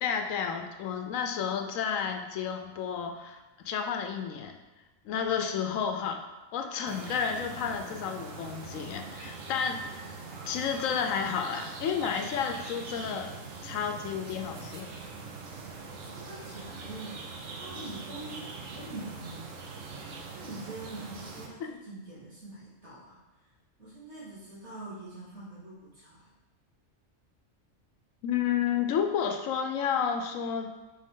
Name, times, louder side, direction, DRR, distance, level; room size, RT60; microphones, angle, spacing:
voice 1, 0.0-4.5 5.0-6.2 6.5-10.1 10.4-13.3 13.6-14.9 21.6-21.7 28.2-30.7, left 7 dB, 90° left, 5 dB, 1.0 m, -31 dB
sound 1, 6.9-21.5, right 4 dB, 80° right, 1.1 m, -42 dB
voice 2, 16.0-17.2 17.5-19.5 20.3-23.2 23.8-26.3, right 2 dB, 60° right, -10 dB, 2.5 m, -44 dB
6.2 x 4.1 x 3.7 m, 1.1 s
omnidirectional pair, 1.3 m